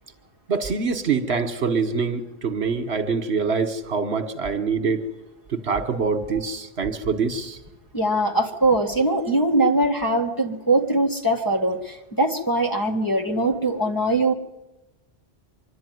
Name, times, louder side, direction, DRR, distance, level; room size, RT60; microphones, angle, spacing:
voice 1, 0.5-5.1 5.5-7.6, right 5 dB, 75° right, 8 dB, 1.6 m, -25 dB
voice 2, 7.9-14.3, right 2 dB, 20° left, 1 dB, 1.6 m, -22 dB
25.5 x 11.5 x 9.4 m, 1.0 s
omnidirectional pair, 1.1 m